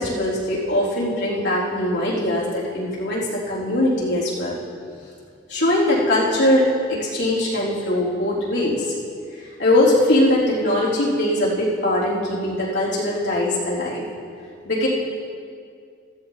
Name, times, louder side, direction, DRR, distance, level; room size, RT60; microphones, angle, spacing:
voice 1, 0.0-4.6 5.5-8.9 9.4-14.0 14.7-14.9, left 1 dB, 75° left, -7 dB, 3.8 m, -21 dB
14.5 x 14.0 x 4.1 m, 2.3 s
head